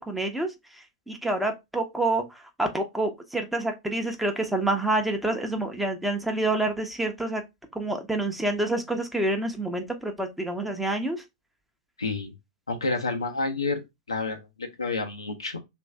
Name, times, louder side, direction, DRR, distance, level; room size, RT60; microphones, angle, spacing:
voice 1, 0.1-0.5 1.1-7.4 7.7-11.2, right 2 dB, 5° right, 0.7 m, -27 dB
voice 2, 12.0-12.3 12.7-13.8 14.1-15.6, left 3 dB, 85° left, 0.8 m, -29 dB
3.1 x 2.6 x 3.3 m
figure-of-eight pair, 95°, 3 cm